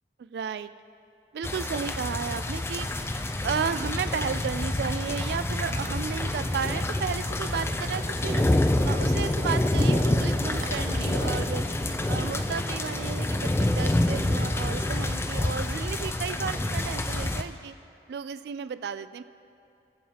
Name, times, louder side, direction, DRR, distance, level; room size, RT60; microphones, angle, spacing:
voice 1, 0.2-0.7 1.3-2.9 3.4-8.4 8.9-11.6 12.1-17.7 18.1-19.2, right 6 dB, 70° right, 13 dB, 0.3 m, -33 dB
sound 1, 1.4-17.4, left 1 dB, 15° left, 0.4 m, -27 dB
sound 2, 5.5-6.1 6.4-6.8 7.2-8.1 8.7-12.2, right 2 dB, 45° right, 0.8 m, -39 dB
21.0 x 7.4 x 2.9 m, 2.6 s
head